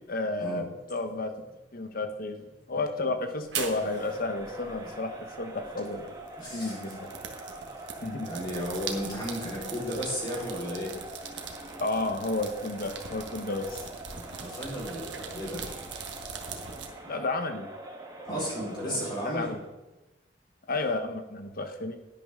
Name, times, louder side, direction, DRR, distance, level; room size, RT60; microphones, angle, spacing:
voice 1, 0.1-1.3 1.7-6.1 6.5-7.1 8.0-8.3 11.8-13.8 17.1-17.7 18.3-18.4 18.8-19.6 20.7-22.0, left 2 dB, 55° left, 7 dB, 1.2 m, -32 dB
sound 1, 3.4-16.9, right 6 dB, 75° right, 1.4 m, -41 dB
Crowd, 3.5-19.7, right 1 dB, 20° right, 1.5 m, -44 dB
voice 2, 6.4-6.8 8.3-10.9 14.1-15.6 18.2-19.5, equal, 25° left, -5 dB, 4.5 m, -34 dB
11.0 x 11.0 x 3.7 m, 1.1 s
head